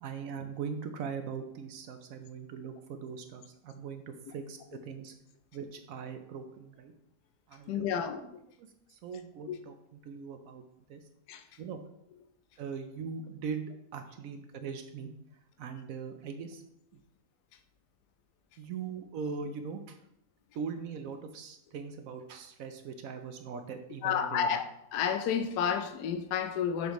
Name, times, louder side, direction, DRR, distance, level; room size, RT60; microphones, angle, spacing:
voice 1, 0.0-5.1 5.5-6.9 7.5-8.0 8.9-10.6 10.9-11.0 11.6-11.8 12.6-15.1 15.6-16.6 16.9-17.0 18.6-20.0 20.5-24.6, right 6 dB, 70° right, 7 dB, 0.9 m, -40 dB
voice 2, 7.7-8.2 9.5-9.6 11.3-11.4 24.0-24.7 24.9-26.9, left 8 dB, 80° left, 8 dB, 1.2 m, -30 dB
6.3 x 5.1 x 3.0 m, 0.80 s
omnidirectional pair, 1.7 m